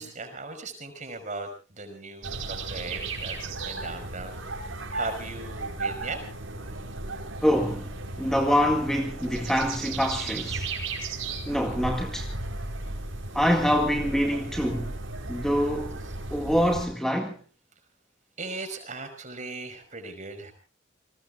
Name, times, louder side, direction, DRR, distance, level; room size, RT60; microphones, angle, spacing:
voice 1, 0.0-4.4 4.9-6.2 18.4-20.5, right 3 dB, 40° right, 5.2 m, -38 dB
sound 1, 2.2-16.9, right 2 dB, 85° right, 5.4 m, -35 dB
voice 2, 7.4-10.7 11.5-12.3 13.3-14.9 15.3-16.0 16.3-17.4, equal, 5° left, 2.0 m, -25 dB
29.5 x 20.0 x 2.5 m
head